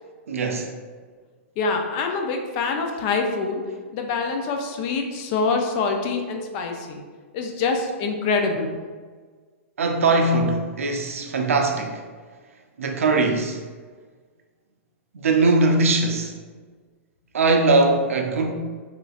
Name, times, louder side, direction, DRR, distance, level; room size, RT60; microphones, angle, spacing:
voice 1, 0.3-0.7 9.8-12.0 12.8-13.6 15.1-16.4 17.3-18.5, right 3 dB, 90° right, 3 dB, 0.4 m, -21 dB
voice 2, 1.6-3.6 3.9-7.0 7.3-8.8, left 4 dB, 40° left, 4 dB, 0.4 m, -25 dB
3.1 x 2.5 x 2.4 m, 1.5 s
hypercardioid pair, 130°, 7 cm